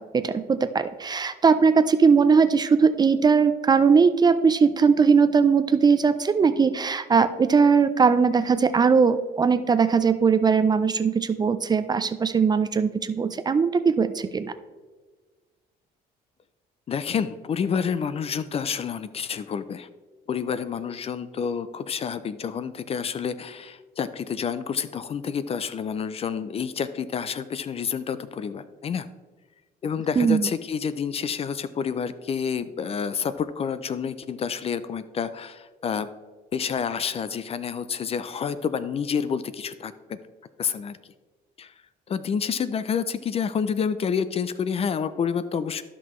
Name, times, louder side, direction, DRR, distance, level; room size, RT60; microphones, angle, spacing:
voice 1, 0.0-14.5 30.2-30.5, right 5 dB, 25° right, 11 dB, 0.4 m, -20 dB
voice 2, 16.9-19.9 20.3-29.1 29.8-36.1 36.5-40.2 40.6-41.0 41.6-41.7 42.1-45.8, left 7 dB, 35° left, 14 dB, 0.4 m, -29 dB
12.5 x 6.0 x 3.1 m, 1.3 s
cardioid pair, 110°, 17 cm